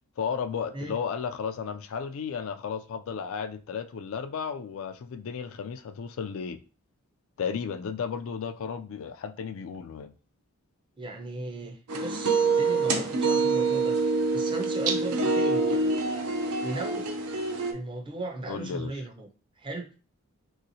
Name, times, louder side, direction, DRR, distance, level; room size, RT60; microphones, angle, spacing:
voice 1, 0.2-6.6 7.4-10.1 18.5-18.9, left 6 dB, 65° left, 0.3 m, -34 dB
voice 2, 11.0-16.3 16.6-17.1 17.7-19.3 19.6-19.9, right 2 dB, 20° right, 0.5 m, -37 dB
sound 1, 11.9-17.7, right 3 dB, 80° right, 0.6 m, -26 dB
3.3 x 2.9 x 2.7 m
head